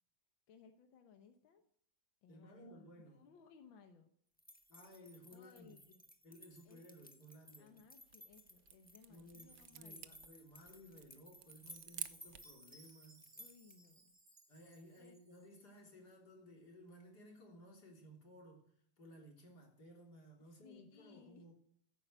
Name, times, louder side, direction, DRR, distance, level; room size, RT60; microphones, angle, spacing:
voice 1, 0.5-1.6 2.2-4.1 5.3-6.0 6.7-6.9 7.6-10.1 13.4-14.1 15.0-15.2 20.4-21.5, left 6 dB, 90° left, 1.9 m, -63 dB
voice 2, 2.3-3.3 4.7-5.7 6.2-7.8 9.1-13.3 14.5-18.7 19.0-21.5, equal, 55° left, 3.8 m, -58 dB
sound 1, 4.4-14.0, left 1 dB, 5° left, 1.2 m, -60 dB
sound 2, 7.9-12.6, right 10 dB, 60° right, 1.1 m, -52 dB
Chime, 11.6-15.7, right 2 dB, 35° right, 2.6 m, -65 dB
14.0 x 10.5 x 8.1 m
omnidirectional pair, 2.1 m